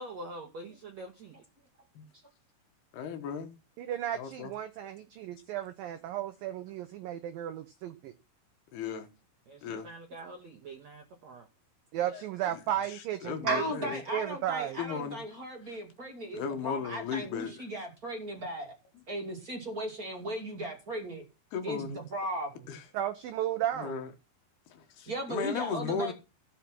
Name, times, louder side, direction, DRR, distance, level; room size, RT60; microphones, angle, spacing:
voice 1, 0.0-1.3 9.5-11.5, right 1 dB, 65° right, 1.8 m, -45 dB
voice 2, 2.9-3.5 4.1-4.5 8.7-9.1 9.6-9.9 12.9-14.0 14.8-15.2 16.3-17.5 21.5-22.0 22.7-22.8 23.8-24.1 24.7-26.1, left 6 dB, 70° left, 3.1 m, -36 dB
voice 3, 3.8-8.1 11.9-14.8 22.9-24.0, right 11 dB, 85° right, 2.0 m, -34 dB
voice 4, 13.4-18.7 19.1-21.2 21.6-22.7 25.1-26.1, right 1 dB, 25° right, 2.1 m, -36 dB
15.5 x 5.9 x 6.0 m
omnidirectional pair, 5.1 m